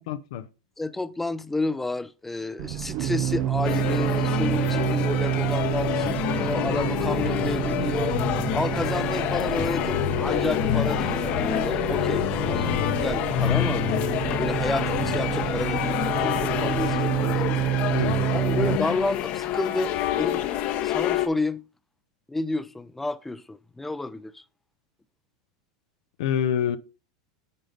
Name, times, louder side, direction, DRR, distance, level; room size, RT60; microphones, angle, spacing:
voice 1, 0.1-0.5 17.9-18.2 18.5-18.7 26.2-26.8, left 9 dB, 75° left, 0.6 m, -26 dB
voice 2, 0.8-8.2 8.5-13.8 14.4-18.0 18.3-20.4 20.8-21.6 22.3-24.4, left 2 dB, 5° left, 0.5 m, -31 dB
sound 1, 2.6-18.8, right 12 dB, 55° right, 0.5 m, -28 dB
sound 2, 3.6-21.3, left 11 dB, 50° left, 0.9 m, -27 dB
9.4 x 3.8 x 5.2 m
supercardioid pair, 125°, 3 cm